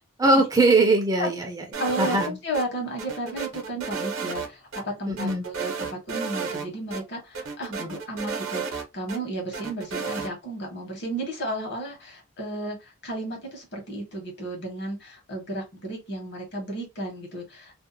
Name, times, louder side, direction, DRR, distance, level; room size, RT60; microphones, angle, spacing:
voice 1, 0.2-1.6 2.0-2.3 5.1-5.4, right 2 dB, 15° right, 0.4 m, -21 dB
sound 1, 1.7-2.6 3.0-4.5 4.7-4.8 5.2-6.7 6.9-7.0 7.3-9.2 9.5-10.3, right 5 dB, 70° right, 0.8 m, -32 dB
voice 2, 1.8-17.9, right 1 dB, 55° left, 1.1 m, -33 dB
2.6 x 2.1 x 2.6 m
head